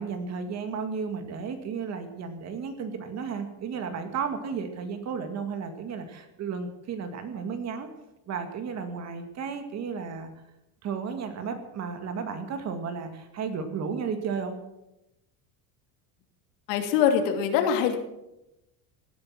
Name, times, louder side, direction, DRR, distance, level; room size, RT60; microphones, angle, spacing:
voice 1, 0.0-7.9 8.3-10.3 10.8-14.6, right 6 dB, 35° right, 7 dB, 2.0 m, -33 dB
voice 2, 16.7-18.0, left 8 dB, 80° left, 5 dB, 2.8 m, -23 dB
17.0 x 10.5 x 7.6 m, 0.91 s
cardioid pair, 160°, 47 cm